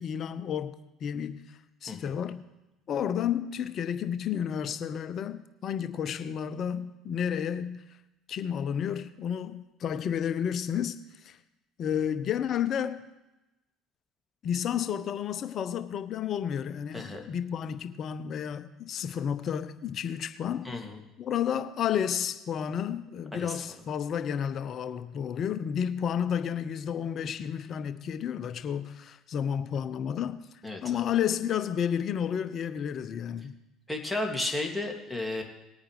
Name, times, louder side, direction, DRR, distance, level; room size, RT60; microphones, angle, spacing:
voice 1, 0.0-2.4 2.9-7.8 8.3-11.4 11.8-13.0 14.4-20.7 21.2-30.4 30.8-33.5, left 8 dB, 50° left, 0.8 m, -31 dB
voice 2, 1.9-2.2 16.9-17.3 20.6-21.0 23.3-23.6 30.6-31.0 33.9-35.4, left 2 dB, 5° left, 2.4 m, -33 dB
19.5 x 8.8 x 3.3 m
hypercardioid pair, 60°, 0 cm